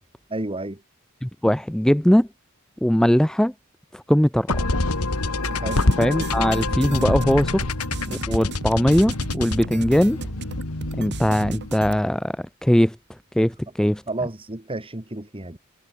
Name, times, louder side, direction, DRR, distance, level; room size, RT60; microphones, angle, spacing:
voice 1, 0.3-0.8 5.6-5.9 13.4-13.5 13.8-15.6, right 2 dB, 25° right, 2.2 m, -31 dB
voice 2, 1.2-2.3 2.8-3.5 3.9-4.6 6.0-7.7 8.1-10.2 11.0-13.0 13.4-14.0, equal, 5° left, 0.4 m, -20 dB
sound 1, 4.5-11.8, left 2 dB, 75° left, 2.5 m, -26 dB
sound 2, 5.4-12.0, right 2 dB, 50° right, 3.1 m, -35 dB
head